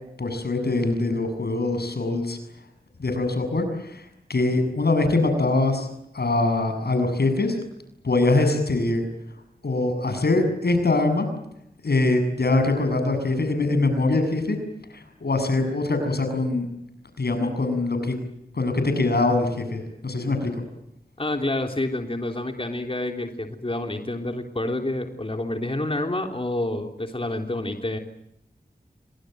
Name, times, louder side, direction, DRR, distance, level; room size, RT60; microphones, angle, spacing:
voice 1, 0.2-2.4 3.0-4.0 4.3-5.9 6.1-7.6 8.0-9.0 9.6-11.3 11.8-14.6 14.9-16.7 17.2-18.1 18.5-20.5, left 2 dB, 80° left, 8 dB, 7.0 m, -23 dB
voice 2, 21.2-28.0, left 1 dB, 35° left, 4 dB, 3.4 m, -28 dB
28.0 x 25.5 x 7.8 m, 0.81 s
cardioid pair, 45°, 16 cm